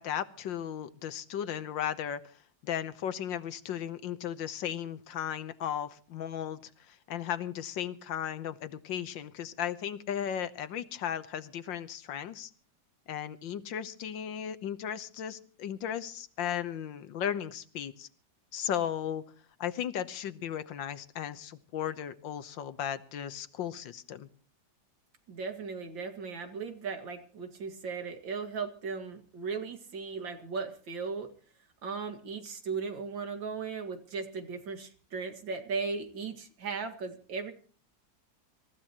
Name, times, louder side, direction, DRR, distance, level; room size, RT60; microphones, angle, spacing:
voice 1, 0.0-2.3 2.6-12.5 13.1-18.1 18.5-19.2 19.6-24.3, left 9 dB, 80° left, 13 dB, 1.7 m, -36 dB
voice 2, 25.3-31.3 31.8-37.5, right 5 dB, 80° right, 6 dB, 2.8 m, -37 dB
26.5 x 15.0 x 3.0 m, 0.42 s
omnidirectional pair, 2.0 m